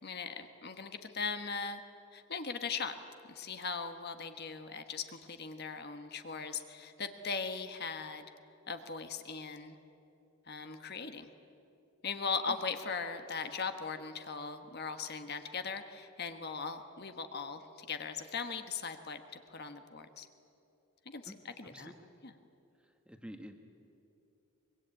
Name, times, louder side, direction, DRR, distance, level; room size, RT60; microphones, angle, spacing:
voice 1, 0.0-1.8 2.1-2.9 3.3-8.3 8.7-9.8 10.5-11.3 12.0-20.3 21.1-21.9 22.2-22.3, left 5 dB, 45° left, 8 dB, 1.2 m, -39 dB
voice 2, 21.6-21.9 22.8-23.6, equal, 5° right, 5 dB, 1.4 m, -49 dB
24.0 x 22.0 x 8.9 m, 2.8 s
head